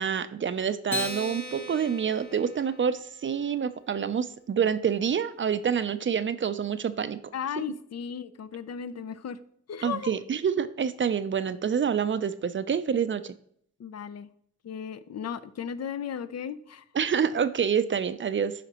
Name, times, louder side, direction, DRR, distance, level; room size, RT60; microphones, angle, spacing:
voice 1, 0.0-7.2 9.8-13.3 17.0-18.5, right 7 dB, 40° right, 13 dB, 0.4 m, -27 dB
Acoustic guitar, 0.9-3.5, left 2 dB, 75° left, 1.9 m, -38 dB
voice 2, 7.3-9.4 9.7-10.2 13.8-14.3 14.6-16.8, left 7 dB, 60° left, 13 dB, 0.5 m, -35 dB
9.1 x 5.1 x 2.9 m, 0.66 s
cardioid pair, 60°, 29 cm